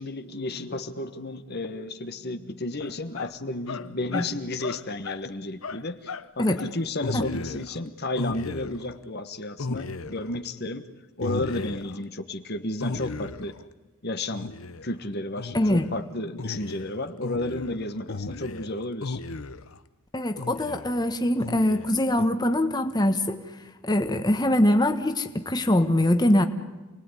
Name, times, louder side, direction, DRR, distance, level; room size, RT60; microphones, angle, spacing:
voice 1, 0.0-10.9 11.2-13.5 14.0-14.5 14.8-19.2, left 2 dB, 50° left, 9 dB, 1.4 m, -32 dB
sound 1, 2.8-3.3 3.7-4.3 4.6-5.2 5.6-6.3 6.6-6.7 7.0-7.8 8.2-9.0 9.6-10.4 11.2-12.0 12.8-13.6 14.3-14.9 15.4-16.0 16.4-19.8 20.4-21.0 21.4-22.3, left 3 dB, 70° left, 1.0 m, -35 dB
voice 2, 15.5-15.9 20.1-23.4 23.8-26.5, left 1 dB, 20° left, 6 dB, 1.4 m, -23 dB
28.5 x 20.0 x 9.8 m, 1.2 s
head